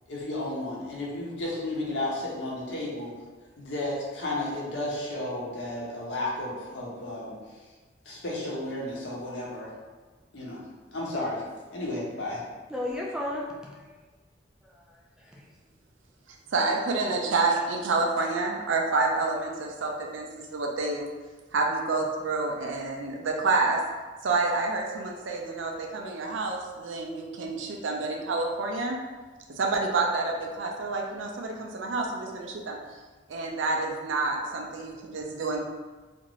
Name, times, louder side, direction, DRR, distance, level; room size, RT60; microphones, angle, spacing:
voice 1, 0.1-3.1 3.6-7.4 8.0-9.7 10.3-10.6 10.9-11.4 11.7-12.4, left 1 dB, 70° left, -5 dB, 0.8 m, -33 dB
voice 2, 12.7-14.0 14.6-15.5, left 1 dB, 5° right, -4 dB, 0.3 m, -35 dB
voice 3, 16.5-21.1 21.5-23.8 24.2-29.0 29.5-32.8 33.3-35.6, right 3 dB, 80° right, 1 dB, 0.5 m, -28 dB
2.6 x 2.5 x 3.0 m, 1.3 s
head